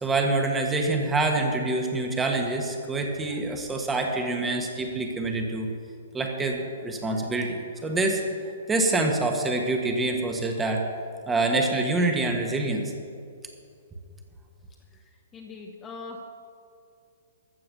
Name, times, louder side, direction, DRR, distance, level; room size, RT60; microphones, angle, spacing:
voice 1, 0.0-5.7 6.1-8.2 8.7-10.9 11.3-12.9, right 2 dB, 10° right, 2 dB, 1.6 m, -26 dB
voice 2, 14.9-16.2, left 3 dB, 15° left, 1 dB, 1.1 m, -42 dB
14.0 x 7.6 x 6.9 m, 2.4 s
figure-of-eight pair, 115°, 0 cm